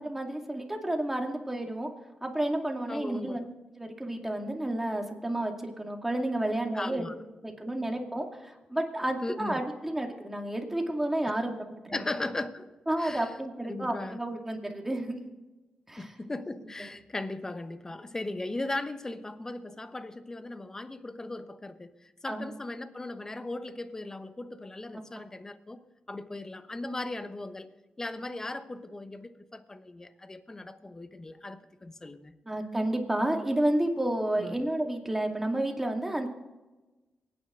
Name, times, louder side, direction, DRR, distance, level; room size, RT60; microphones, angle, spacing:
voice 1, 0.0-1.9 2.2-3.5 3.8-7.1 7.4-12.0 12.9-15.2 15.9-16.1 22.3-22.4 32.5-36.3, right 1 dB, 10° right, 2.3 m, -31 dB
voice 2, 2.9-3.5 6.7-7.2 9.2-9.6 11.9-12.7 13.0-13.3 13.7-14.2 16.0-25.8 26.1-32.3 34.4-34.5, left 2 dB, 20° left, 1.0 m, -38 dB
23.5 x 9.9 x 3.8 m
cardioid pair, 85°, 2 cm